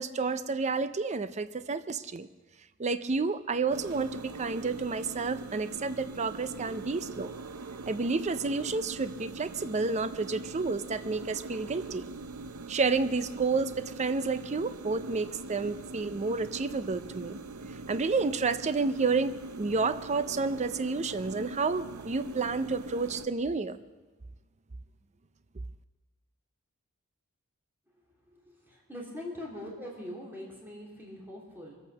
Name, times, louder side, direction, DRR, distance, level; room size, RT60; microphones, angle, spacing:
voice 1, 0.0-2.3 2.8-7.3 7.9-12.0 12.7-17.4 17.9-23.8, right 4 dB, 30° right, 13 dB, 0.5 m, -30 dB
sound 1, 3.7-23.3, right 3 dB, 80° right, 0.7 m, -42 dB
voice 2, 28.3-31.7, left 1 dB, 10° right, -3 dB, 3.2 m, -42 dB
23.5 x 8.4 x 6.6 m, 1.2 s
head